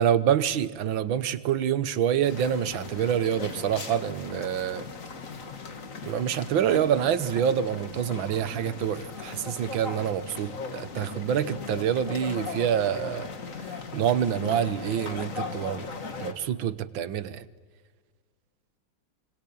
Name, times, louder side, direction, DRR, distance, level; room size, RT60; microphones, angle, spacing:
voice 1, 0.0-4.9 6.0-13.3 13.9-15.9 16.2-17.4, right 9 dB, 70° right, 1.8 m, -26 dB
sound 1, 2.2-16.3, left 4 dB, 40° left, 2.0 m, -38 dB
26.0 x 24.5 x 8.7 m
omnidirectional pair, 2.4 m